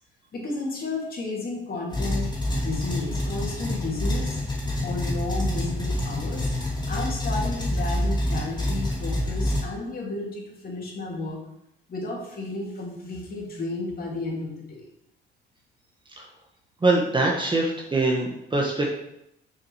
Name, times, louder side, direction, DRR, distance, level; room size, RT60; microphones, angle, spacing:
voice 1, 0.3-4.4 4.8-11.4 11.9-14.8, left 3 dB, 50° left, -3 dB, 3.1 m, -33 dB
sound 1, 1.9-9.6, left 1 dB, 20° left, 3.0 m, -27 dB
voice 2, 16.8-18.9, right 2 dB, 25° right, -1 dB, 1.5 m, -23 dB
7.1 x 6.4 x 5.0 m, 0.81 s
cardioid pair, 90°, 20 cm